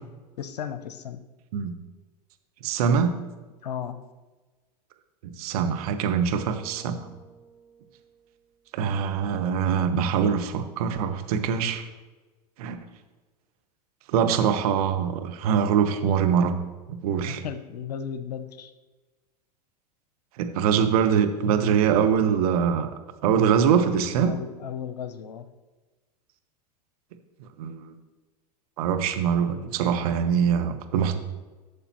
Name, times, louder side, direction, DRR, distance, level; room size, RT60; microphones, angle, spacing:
voice 1, 0.4-1.2 3.6-4.0 17.2-18.7 24.2-25.5, left 8 dB, 75° left, 12 dB, 0.7 m, -35 dB
voice 2, 2.6-3.1 5.2-6.9 8.7-11.9 12.6-12.8 14.1-16.6 16.9-17.4 20.4-22.9 23.2-24.4 27.6-28.0 28.8-31.2, right 7 dB, 65° right, 7 dB, 1.1 m, -23 dB
Bass guitar, 6.3-8.6, right 5 dB, 10° right, 2.8 m, -51 dB
13.0 x 6.8 x 3.0 m, 1.3 s
hypercardioid pair, 100°, 21 cm